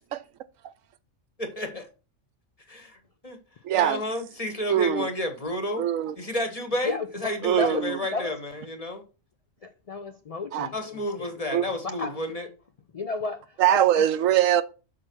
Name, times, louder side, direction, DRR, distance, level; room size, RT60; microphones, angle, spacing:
voice 1, 1.4-1.9 2.7-3.4 3.7-5.8 6.2-9.0 10.7-12.5, left 1 dB, 30° left, 1.4 m, -31 dB
voice 2, 3.6-4.0 4.7-5.1 5.8-6.2 7.4-8.0 10.5-10.7 11.5-11.6 13.6-14.6, right 11 dB, 80° right, 1.0 m, -22 dB
voice 3, 6.8-8.3 9.6-12.5 12.9-14.1, left 3 dB, 60° left, 0.3 m, -34 dB
6.2 x 4.6 x 6.0 m
omnidirectional pair, 1.4 m